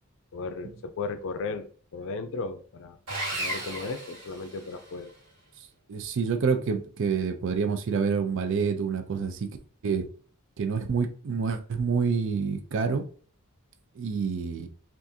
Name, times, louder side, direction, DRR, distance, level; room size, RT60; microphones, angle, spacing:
voice 1, 0.3-3.0 3.3-5.1, left 4 dB, 60° left, 0.4 m, -35 dB
Sawing, 3.1-5.0, right 1 dB, 80° right, 1.5 m, -34 dB
voice 2, 5.9-9.5 9.8-10.1 10.6-13.1 14.0-14.7, right 5 dB, 55° right, 0.4 m, -27 dB
3.5 x 2.4 x 2.7 m
head